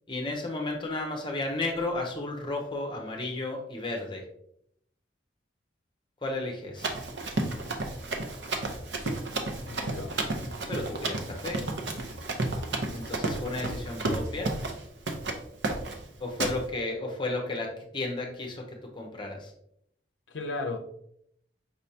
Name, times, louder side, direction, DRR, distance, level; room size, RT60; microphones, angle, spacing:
voice 1, 0.1-4.2 6.2-6.9 10.7-11.6 12.9-14.5 16.2-18.6 18.9-19.5, left 2 dB, 25° left, 1 dB, 0.7 m, -33 dB
Run, 6.8-14.8 15.1-15.4 15.6-16.0 16.4-16.6, right 2 dB, 65° right, 0.7 m, -32 dB
voice 2, 9.6-10.1 20.3-20.8, left 3 dB, 70° left, 5 dB, 0.6 m, -34 dB
5.3 x 3.3 x 2.8 m, 0.70 s
head